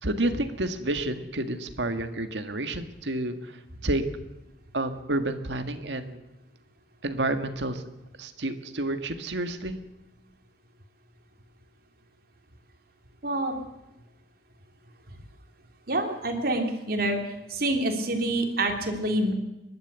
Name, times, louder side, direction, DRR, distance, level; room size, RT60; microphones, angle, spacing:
voice 1, 0.0-4.0 4.7-6.2 7.0-7.8 8.2-9.8, right 1 dB, 85° right, 8 dB, 1.8 m, -30 dB
voice 2, 13.2-13.5 15.9-17.2 17.5-19.3, right 1 dB, 55° right, 4 dB, 3.1 m, -27 dB
29.5 x 12.0 x 8.2 m, 0.96 s
head